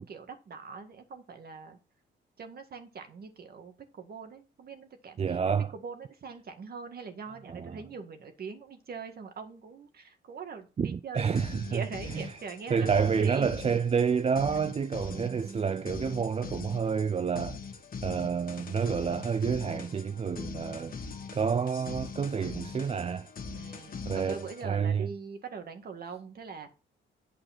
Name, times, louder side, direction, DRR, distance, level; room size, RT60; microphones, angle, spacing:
voice 1, 0.0-1.8 2.4-11.4 11.7-13.6 15.0-16.0 23.5-26.7, right 5 dB, 50° right, 1.9 m, -42 dB
voice 2, 5.2-5.7 7.4-7.8 10.8-12.3 12.7-17.6 18.0-23.3 24.0-25.1, right 6 dB, 30° right, 0.5 m, -29 dB
sound 1, 11.2-24.6, left 5 dB, 45° left, 1.5 m, -42 dB
8.8 x 4.8 x 5.9 m
cardioid pair, 90°, 20 cm